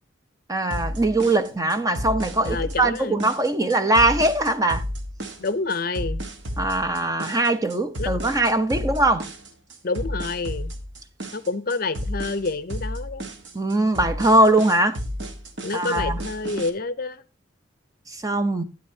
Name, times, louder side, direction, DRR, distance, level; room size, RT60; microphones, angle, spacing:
voice 1, 0.5-4.8 6.6-9.3 13.5-15.0 15.7-16.2 18.1-18.6, right 2 dB, 20° right, 0.7 m, -21 dB
sound 1, 0.7-16.7, equal, 70° right, 1.3 m, -32 dB
voice 2, 2.4-3.2 5.4-6.2 8.0-8.1 9.8-10.7 11.3-13.2 15.6-17.2, left 3 dB, 50° left, 0.6 m, -28 dB
12.0 x 9.5 x 2.8 m
head